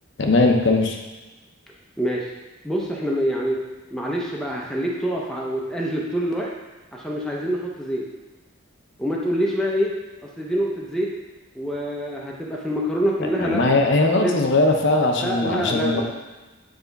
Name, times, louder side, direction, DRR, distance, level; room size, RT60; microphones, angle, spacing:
voice 1, 0.2-1.0 13.2-16.1, left 2 dB, 55° left, 2 dB, 0.6 m, -20 dB
voice 2, 2.0-2.3 2.6-3.6 3.9-6.5 6.9-8.1 9.0-9.9 10.4-11.1 11.6-13.6 14.1-14.3 15.2-16.1, equal, 5° left, -3 dB, 0.6 m, -25 dB
8.0 x 3.4 x 4.0 m, 1.2 s
head